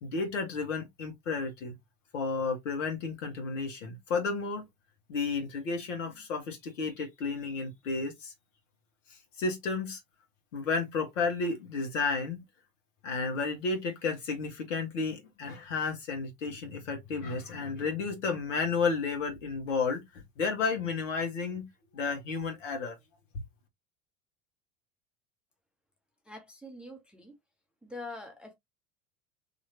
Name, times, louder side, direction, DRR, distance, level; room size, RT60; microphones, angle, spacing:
voice 1, 0.0-1.7 2.1-4.7 5.1-8.3 9.4-10.0 10.5-12.4 13.0-21.7 21.9-23.0, left 4 dB, 65° left, 1.4 m, -32 dB
voice 2, 26.2-27.3 27.8-28.5, left 2 dB, ahead, 0.6 m, -44 dB
3.0 x 2.9 x 2.8 m
figure-of-eight pair, 75°, 41 cm